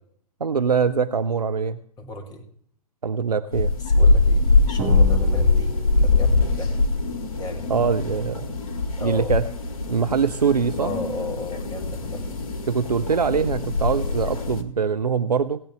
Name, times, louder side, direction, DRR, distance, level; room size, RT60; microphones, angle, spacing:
voice 1, 0.4-1.8 3.0-3.7 7.7-8.6 9.0-9.4 9.9-10.9 12.7-15.6, right 6 dB, 80° right, 11 dB, 0.6 m, -23 dB
voice 2, 2.0-2.4 3.8-6.7 7.4-7.7 9.0-9.3 10.8-12.4, left 1 dB, 20° left, 4 dB, 1.8 m, -34 dB
sound 1, 3.5-14.6, left 3 dB, 60° left, 1.8 m, -22 dB
Drum, 4.8-6.5, right 6 dB, 35° right, 2.1 m, -33 dB
18.5 x 8.7 x 3.4 m, 0.63 s
figure-of-eight pair, 115°, 20 cm